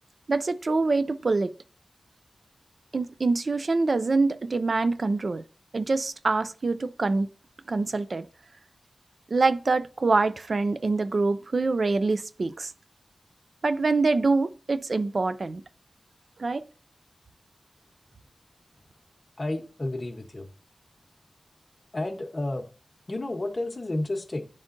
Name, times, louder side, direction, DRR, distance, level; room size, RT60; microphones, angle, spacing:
voice 1, 0.3-1.5 2.9-5.4 5.7-7.3 7.7-8.3 9.3-12.7 13.6-15.6 16.4-16.7, right 3 dB, 60° right, 0.4 m, -25 dB
voice 2, 19.4-20.5 21.9-22.7 23.1-24.5, left 2 dB, 35° left, 1.0 m, -31 dB
11.0 x 3.7 x 2.5 m
wide cardioid pair, 75°, 0 cm